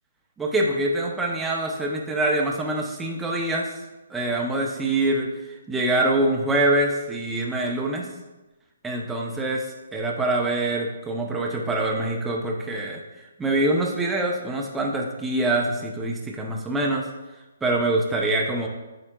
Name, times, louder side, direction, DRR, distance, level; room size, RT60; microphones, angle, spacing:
voice 1, 0.4-3.7 4.1-5.3 5.7-8.1 8.8-13.0 13.4-17.0 17.6-18.7, right 2 dB, 5° right, -1 dB, 0.6 m, -24 dB
8.4 x 4.9 x 2.3 m, 1.1 s
hypercardioid pair, 150°, 0 cm